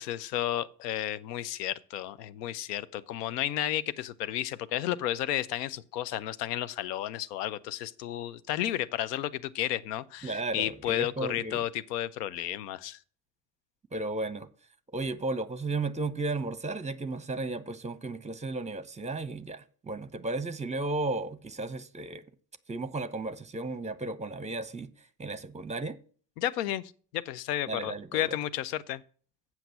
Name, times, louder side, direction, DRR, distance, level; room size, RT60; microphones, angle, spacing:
voice 1, 0.0-13.0 26.4-26.8 27.1-29.0, left 12 dB, 80° left, 0.6 m, -32 dB
voice 2, 10.2-11.6 13.9-14.5 14.9-22.2 22.7-24.9 25.2-26.0 27.7-28.4, right 2 dB, 15° right, 0.9 m, -34 dB
7.8 x 5.9 x 7.4 m
hypercardioid pair, 50°, 48 cm